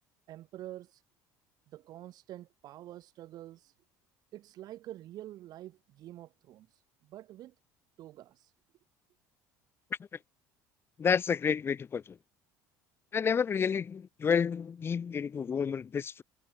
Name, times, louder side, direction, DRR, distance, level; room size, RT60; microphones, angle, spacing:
voice 1, 0.3-1.0 1.7-3.7 4.3-7.5 8.0-8.5, right 14 dB, 60° right, 5.7 m, -47 dB
voice 2, 11.0-12.0 13.1-16.2, left 6 dB, 30° left, 1.0 m, -30 dB
supercardioid pair, 100°, 8 cm